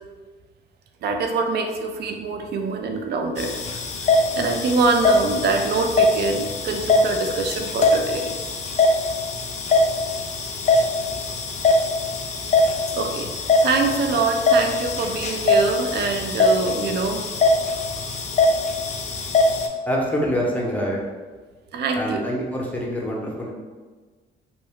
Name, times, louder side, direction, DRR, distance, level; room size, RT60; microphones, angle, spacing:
voice 1, 1.0-8.3 12.9-13.3 13.6-17.2 17.8-18.0 21.7-22.3, right 4 dB, 55° right, 3 dB, 0.4 m, -24 dB
sound 1, 3.4-19.7, left 2 dB, 35° left, 0.4 m, -22 dB
voice 2, 19.9-21.0 21.9-23.5, equal, 10° left, -3 dB, 0.7 m, -25 dB
2.6 x 2.2 x 3.5 m, 1.4 s
cardioid pair, 90°, 20 cm